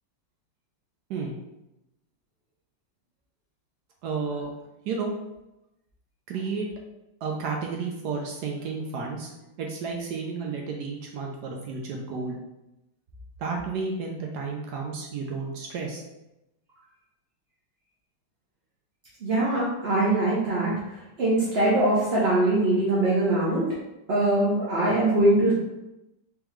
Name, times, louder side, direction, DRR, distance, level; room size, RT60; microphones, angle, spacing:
voice 1, 4.0-4.5 4.9-5.1 6.3-6.7 7.2-9.3 9.6-12.4 13.4-16.0, right 4 dB, 70° right, 1 dB, 1.0 m, -32 dB
voice 2, 19.2-20.7 21.2-23.7 24.1-25.5, right 1 dB, 55° right, -7 dB, 0.7 m, -22 dB
3.6 x 3.4 x 3.1 m, 0.93 s
omnidirectional pair, 2.1 m